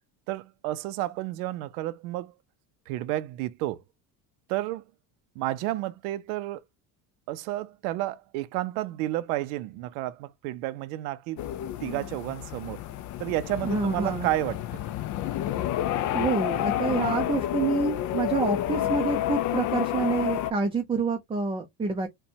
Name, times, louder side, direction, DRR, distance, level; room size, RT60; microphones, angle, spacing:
voice 1, 0.3-2.3 2.9-3.8 4.5-4.8 5.4-6.6 7.3-11.5 11.8-12.8 13.2-14.8, right 16 dB, 90° right, 0.5 m, -31 dB
sound 1, 11.4-20.5, left 12 dB, 45° left, 0.4 m, -29 dB
voice 2, 13.6-14.3 16.1-22.1, right 4 dB, 15° right, 0.4 m, -27 dB
4.3 x 2.3 x 2.7 m
supercardioid pair, 110°, 43 cm